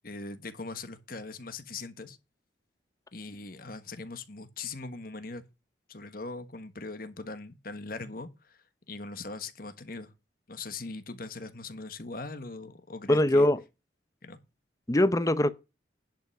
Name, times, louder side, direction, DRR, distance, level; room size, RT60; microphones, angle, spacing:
voice 1, 0.0-2.2 3.1-5.4 5.9-8.6 8.9-10.1 10.5-13.5 14.2-14.4, left 3 dB, 50° left, 1.4 m, -40 dB
voice 2, 13.1-13.6 14.9-15.5, left 1 dB, 20° left, 0.7 m, -22 dB
10.5 x 5.5 x 6.1 m
head